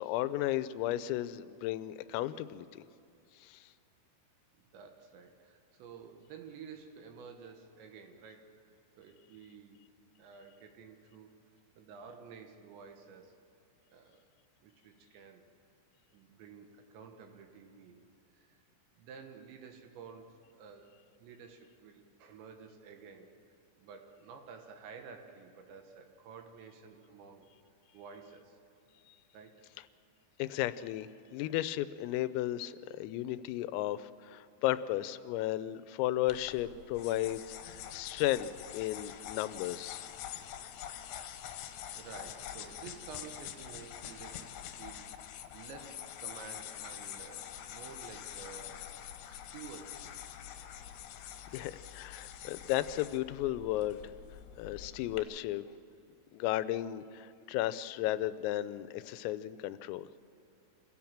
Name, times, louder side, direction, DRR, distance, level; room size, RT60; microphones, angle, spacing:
voice 1, 0.0-2.8 3.4-3.6 29.1-29.2 30.4-40.1 51.5-54.0 54.6-55.7 56.3-60.1, left 14 dB, 90° left, 14 dB, 3.3 m, -34 dB
voice 2, 4.7-8.6 9.0-9.8 10.2-11.3 11.7-13.4 13.9-14.2 14.6-15.4 16.1-18.0 18.3-18.6 19.0-23.4 23.8-27.5 27.9-28.6 29.3-29.7 40.6-40.8 41.9-45.1 45.5-48.9 49.3-50.2, right 6 dB, 70° right, 5 dB, 3.3 m, -51 dB
sound 1, 36.3-55.2, left 10 dB, 70° left, 3.1 m, -46 dB
27.0 x 16.5 x 7.3 m, 2.7 s
omnidirectional pair, 5.9 m